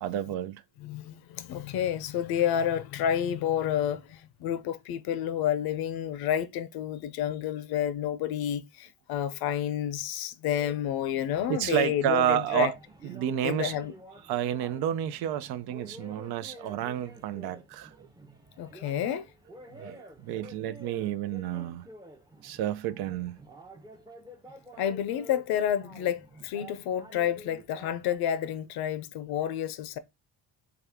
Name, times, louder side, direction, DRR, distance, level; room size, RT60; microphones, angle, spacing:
voice 1, 0.0-0.6 11.5-12.8 13.0-13.8 14.3-18.1 19.7-21.9 22.4-23.4 24.7-24.8, right 11 dB, 80° right, 0.5 m, -30 dB
voice 2, 0.8-12.7 13.4-13.9 18.6-19.3 24.8-30.0, left 10 dB, 75° left, 0.6 m, -30 dB
sound 1, 10.5-28.2, right 1 dB, 10° right, 0.6 m, -50 dB
3.4 x 2.4 x 3.4 m
cardioid pair, 85°, 38 cm